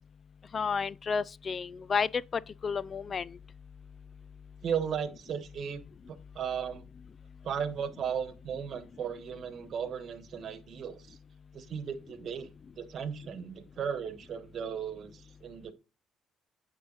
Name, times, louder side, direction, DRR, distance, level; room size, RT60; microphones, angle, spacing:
voice 1, 0.5-3.4, left 5 dB, 45° left, 0.4 m, -31 dB
voice 2, 4.6-5.8 6.1-6.9 7.4-11.2 11.5-12.5 12.8-15.7, right 7 dB, 60° right, 1.3 m, -36 dB
8.8 x 4.8 x 3.9 m
supercardioid pair, 60°, 0 cm